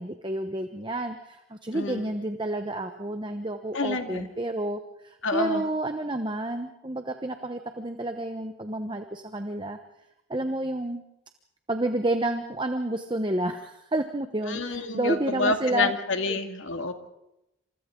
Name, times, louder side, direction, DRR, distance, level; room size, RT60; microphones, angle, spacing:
voice 1, 0.0-9.8 10.3-11.0 11.7-15.9 16.3-16.4, right 1 dB, 25° right, 6 dB, 1.0 m, -30 dB
voice 2, 1.7-2.1 3.7-4.3 5.2-5.6 14.5-16.9, left 3 dB, 70° left, 5 dB, 2.3 m, -28 dB
28.5 x 27.5 x 3.8 m, 0.87 s
head